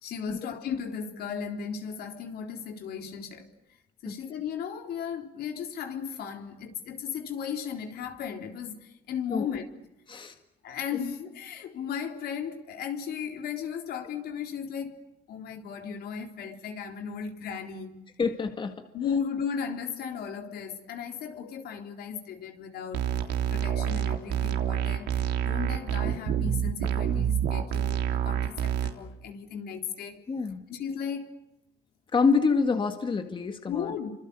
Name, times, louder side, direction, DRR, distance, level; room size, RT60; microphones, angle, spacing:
voice 1, 0.0-3.5 4.0-9.6 10.6-18.0 18.9-23.2 23.5-30.2 30.7-31.3 33.7-34.1, left 7 dB, 70° left, 3.8 m, -36 dB
voice 2, 18.2-18.9 30.3-30.6 32.1-33.9, left 5 dB, 30° left, 2.0 m, -26 dB
sound 1, 22.9-28.9, right 9 dB, 85° right, 3.4 m, -27 dB
29.5 x 26.0 x 7.0 m
cardioid pair, 110°, 17 cm